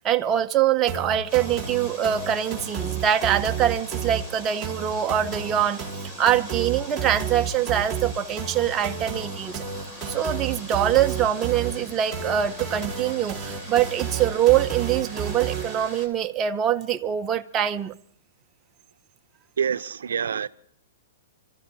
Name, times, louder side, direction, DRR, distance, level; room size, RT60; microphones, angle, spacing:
voice 1, 0.0-5.8 6.2-9.6 10.1-17.9, right 10 dB, 20° right, 0.5 m, -24 dB
sound 1, 0.9-15.9, right 7 dB, ahead, 3.4 m, -32 dB
sound 2, 1.3-16.1, equal, 20° left, 2.7 m, -42 dB
voice 2, 19.6-20.5, right 7 dB, 90° right, 0.5 m, -26 dB
29.0 x 13.5 x 2.6 m
hypercardioid pair, 155°, 0 cm